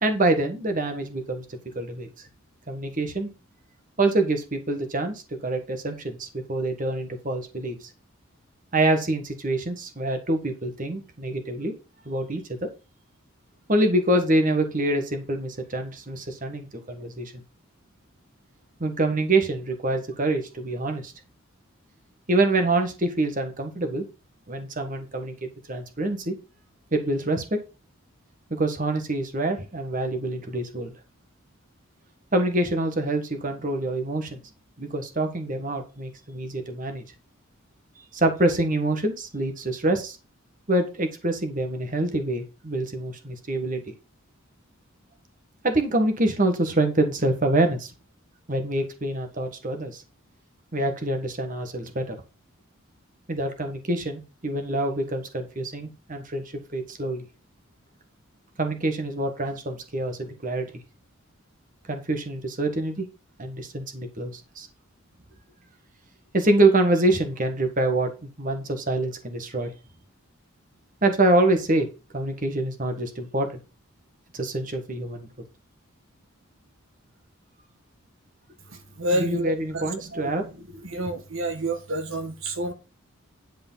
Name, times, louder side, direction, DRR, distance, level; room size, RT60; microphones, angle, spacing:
voice 1, 0.0-2.1 2.7-3.3 4.0-7.9 8.7-11.7 12.0-12.7 13.7-17.3 18.8-21.1 22.3-24.0 24.5-26.3 26.9-27.6 28.5-30.9 32.3-34.4 34.8-37.0 38.1-40.2 40.7-43.8 45.6-47.9 48.5-50.0 50.7-52.2 53.3-56.4 56.7-57.2 58.6-60.7 61.9-63.1 63.4-64.7 66.3-69.7 71.0-71.9 72.1-73.6 74.3-75.3 79.1-80.4, right 2 dB, 40° right, 1.5 m, -25 dB
voice 2, 79.0-80.2 80.8-82.7, right 1 dB, 70° right, 1.5 m, -29 dB
10.5 x 5.0 x 5.6 m
head